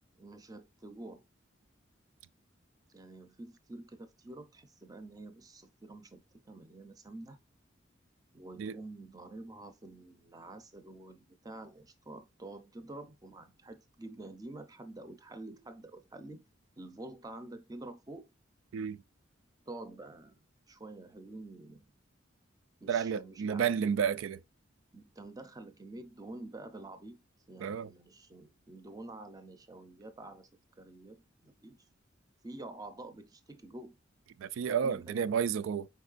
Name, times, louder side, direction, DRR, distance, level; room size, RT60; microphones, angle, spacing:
voice 1, 0.2-1.2 2.9-7.4 8.3-16.4 16.8-18.3 19.7-20.4 20.7-21.8 22.8-23.8 24.9-27.2 27.5-30.5 30.8-31.9 32.4-34.0 34.8-35.3, right 2 dB, 20° right, 0.5 m, -48 dB
voice 2, 22.9-24.4 27.6-27.9 34.4-35.9, right 7 dB, 85° right, 0.3 m, -31 dB
4.5 x 4.3 x 2.4 m
head